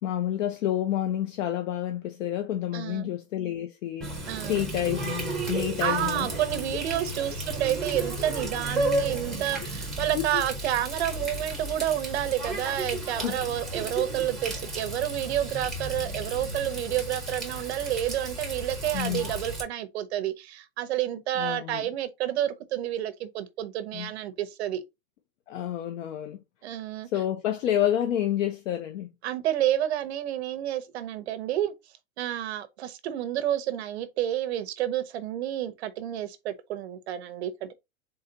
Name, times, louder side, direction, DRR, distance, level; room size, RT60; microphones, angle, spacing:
voice 1, 0.0-6.3 6.7-6.8 10.0-10.4 13.0-13.4 18.9-19.3 21.4-21.9 23.9-24.1 25.5-26.4 27.1-29.1, left 11 dB, 65° left, 0.7 m, -29 dB
voice 2, 2.7-3.1 4.3-4.6 5.8-24.8 26.6-27.1 29.2-31.7 32.2-37.7, right 12 dB, 50° right, 0.6 m, -30 dB
Water tap faucet, 4.0-19.6, right 1 dB, ahead, 0.7 m, -33 dB
3.9 x 3.9 x 2.7 m
supercardioid pair, 160°, 41 cm